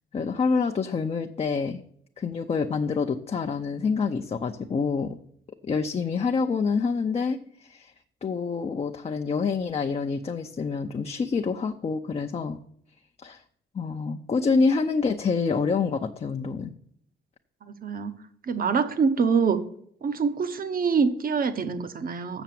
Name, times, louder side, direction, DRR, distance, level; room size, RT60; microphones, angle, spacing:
voice 1, 0.1-1.8 2.2-5.2 5.6-7.9 8.2-12.6 13.2-13.4 13.7-16.7, left 5 dB, 30° left, 4 dB, 0.6 m, -27 dB
voice 2, 17.8-18.1 18.5-19.6 20.0-22.4, right 5 dB, 45° right, 11 dB, 1.0 m, -25 dB
7.1 x 6.6 x 7.6 m, 0.68 s
cardioid pair, 90°, 20 cm